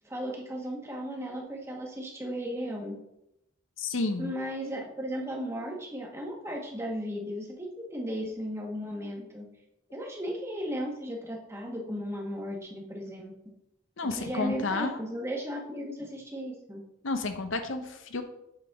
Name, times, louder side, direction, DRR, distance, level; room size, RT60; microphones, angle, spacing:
voice 1, 0.0-3.0 4.2-9.5 9.9-13.3 14.2-16.8, equal, 15° right, -1 dB, 1.2 m, -35 dB
voice 2, 3.8-4.3 14.0-15.0 17.0-18.2, left 3 dB, 80° left, 7 dB, 0.8 m, -31 dB
7.9 x 5.3 x 3.6 m, 0.85 s
head